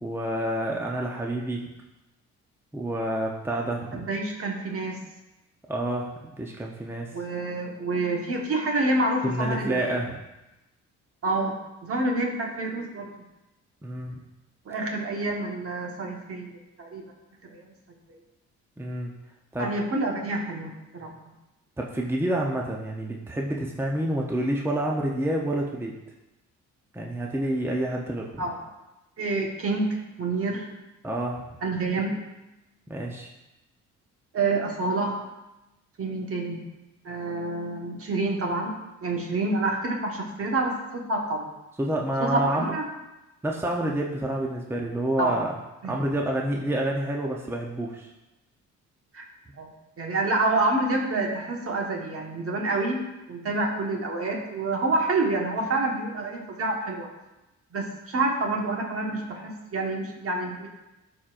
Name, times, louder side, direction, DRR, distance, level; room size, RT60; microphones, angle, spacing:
voice 1, 0.0-1.7 2.7-4.0 5.7-7.1 9.2-10.2 13.8-14.2 18.8-19.1 19.5-19.7 21.8-26.0 26.9-28.4 31.0-31.4 32.9-33.3 41.8-42.7 43.4-45.5 45.9-48.1, right 1 dB, 10° right, -1 dB, 0.8 m, -28 dB
voice 2, 3.9-5.0 7.1-10.0 11.2-11.6 11.8-13.1 14.6-17.0 17.5-17.6 19.6-21.1 28.4-28.5 29.2-29.9 30.2-30.7 31.6-32.2 34.3-35.2 36.0-36.6 37.0-38.7 39.0-41.5 42.2-42.9 45.2-45.3 45.8-45.9 49.1-49.2 49.6-49.7 50.0-53.0 53.3-57.1 57.7-60.7, right 2 dB, 50° right, 0 dB, 1.5 m, -27 dB
12.0 x 4.4 x 2.5 m, 0.97 s
cardioid pair, 90°, 30 cm